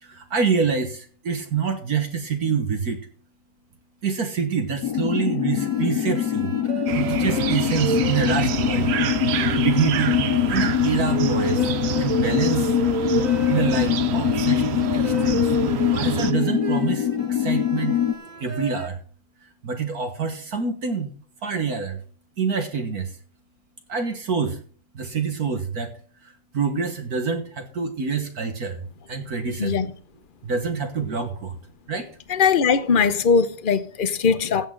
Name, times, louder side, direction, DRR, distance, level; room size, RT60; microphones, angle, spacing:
voice 1, 0.0-3.0 4.0-8.9 9.5-10.2 10.5-11.7 12.0-12.7 13.5-15.5 15.8-18.0 18.4-19.0 19.6-21.1 21.4-22.0 22.4-23.1 23.9-24.6 24.9-26.0 26.2-28.8 29.1-29.8 30.4-31.6 31.9-32.1, right 5 dB, 60° right, 1.8 m, -26 dB
sound 1, 4.8-18.1, left 10 dB, 70° left, 1.2 m, -23 dB
sound 2, 5.6-18.9, right 2 dB, 30° right, 1.0 m, -32 dB
sound 3, 6.9-16.3, right 10 dB, 85° right, 0.5 m, -28 dB
voice 2, 32.3-34.7, left 6 dB, 50° left, 0.6 m, -20 dB
15.0 x 8.2 x 3.8 m
omnidirectional pair, 1.9 m